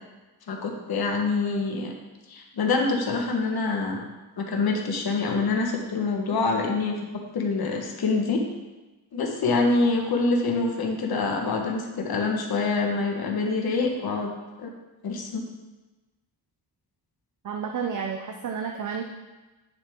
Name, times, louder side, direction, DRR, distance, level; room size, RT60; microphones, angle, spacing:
voice 1, 0.5-1.9 2.3-4.0 4.4-8.4 9.1-14.7 15.0-15.4, left 3 dB, 70° left, 1 dB, 1.4 m, -26 dB
voice 2, 17.4-19.1, right 6 dB, 50° right, 3 dB, 0.7 m, -31 dB
10.0 x 7.0 x 3.6 m, 1.2 s
wide cardioid pair, 140°, 39 cm